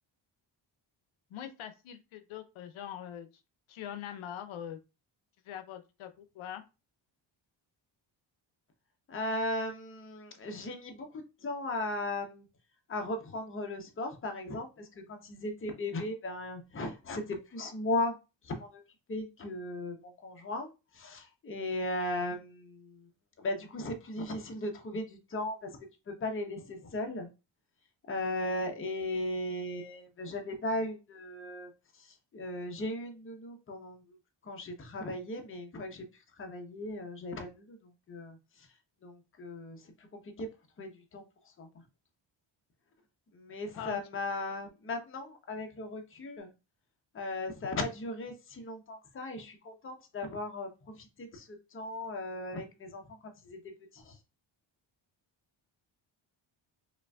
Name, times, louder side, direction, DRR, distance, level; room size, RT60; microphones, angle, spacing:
voice 1, 1.3-3.3 3.7-4.8 5.4-6.6 43.7-44.0, left 10 dB, 80° left, 0.6 m, -42 dB
voice 2, 9.1-11.1 11.4-12.5 12.9-18.2 18.4-18.8 19.1-20.7 20.9-23.0 23.4-25.8 26.1-27.3 28.1-31.7 32.3-34.0 34.4-36.0 36.4-37.8 38.1-38.4 39.0-39.8 40.4-40.5 40.8-41.2 41.6-41.7 43.3-46.5 47.1-53.6 53.9-54.2, left 1 dB, 25° left, 0.7 m, -37 dB
5.0 x 2.5 x 2.3 m
cardioid pair, 120°, 47 cm